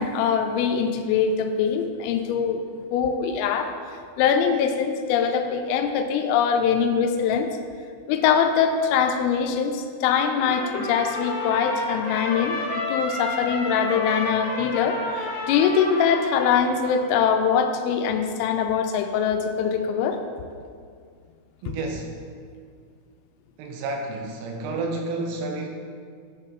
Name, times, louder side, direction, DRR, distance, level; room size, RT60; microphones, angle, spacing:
voice 1, 0.0-2.6 2.9-3.7 4.2-7.5 8.1-20.2, left 7 dB, 90° left, 6 dB, 3.3 m, -23 dB
Trumpet, 10.4-16.9, left 1 dB, 65° left, 3.6 m, -30 dB
voice 2, 21.6-22.2 23.6-25.7, right 2 dB, 80° right, 3 dB, 3.0 m, -30 dB
11.5 x 6.5 x 3.7 m, 2.1 s
omnidirectional pair, 5.8 m